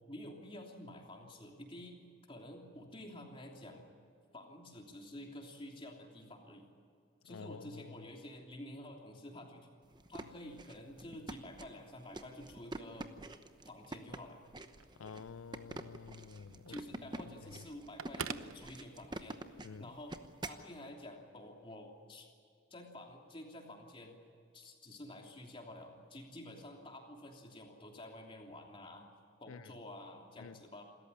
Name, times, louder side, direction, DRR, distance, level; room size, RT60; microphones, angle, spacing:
voice 1, 0.1-3.9 4.3-6.7 7.2-9.7 10.1-13.1 13.7-14.4 16.7-19.4 19.8-20.2 20.4-22.3 22.7-24.2 24.5-29.1 29.4-30.8, left 1 dB, 25° left, 3.1 m, -50 dB
voice 2, 7.3-7.9 15.0-16.8 19.6-19.9 29.5-29.7 30.4-30.6, left 5 dB, 85° left, 0.5 m, -49 dB
sound 1, 9.9-20.7, right 2 dB, 20° right, 0.9 m, -47 dB
Telephone, 14.6-19.4, right 7 dB, 85° right, 0.9 m, -49 dB
27.5 x 14.0 x 9.9 m
head